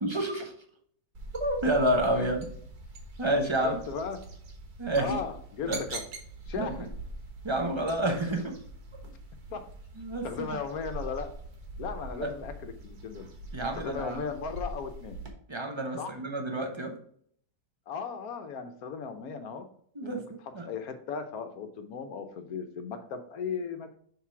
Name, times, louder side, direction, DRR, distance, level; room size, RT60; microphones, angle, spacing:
voice 1, 0.0-0.5 1.4-2.5 3.2-3.8 4.8-5.2 5.7-5.8 6.6-6.7 7.4-8.6 10.0-10.5 12.2-12.3 13.5-14.2 15.5-17.0 20.0-20.2 20.5-20.7, right 1 dB, 30° right, 3 dB, 0.5 m, -29 dB
sound 1, 1.1-15.3, right 2 dB, 65° right, 1.6 m, -43 dB
voice 2, 3.6-4.2 5.0-6.0 6.5-6.9 9.5-9.7 10.2-11.3 11.8-13.3 13.8-15.2 16.0-16.1 17.9-19.7 20.0-20.2 20.7-24.0, left 6 dB, 70° left, 8 dB, 1.2 m, -36 dB
6.5 x 3.3 x 4.6 m, 0.62 s
omnidirectional pair, 1.7 m